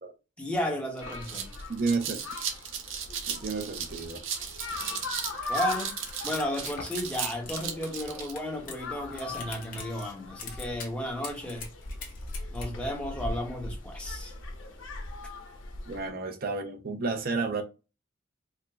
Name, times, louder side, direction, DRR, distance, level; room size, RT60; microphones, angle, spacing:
voice 1, 0.4-1.5 4.8-4.9 5.5-5.9 6.2-11.7 12.5-14.3, left 1 dB, 5° left, 0.9 m, -33 dB
sound 1, 0.5-0.6 1.0-8.3, right 7 dB, 85° right, 0.8 m, -36 dB
sound 2, 1.0-16.1, left 2 dB, 80° left, 1.0 m, -40 dB
voice 2, 1.7-2.2 3.3-4.2 15.9-17.6, right 4 dB, 50° right, 0.6 m, -31 dB
sound 3, 5.4-7.2 7.5-8.8 9.1-10.1 10.4-10.9 11.2-12.7, left 5 dB, 45° left, 1.0 m, -42 dB
4.7 x 2.0 x 3.5 m
head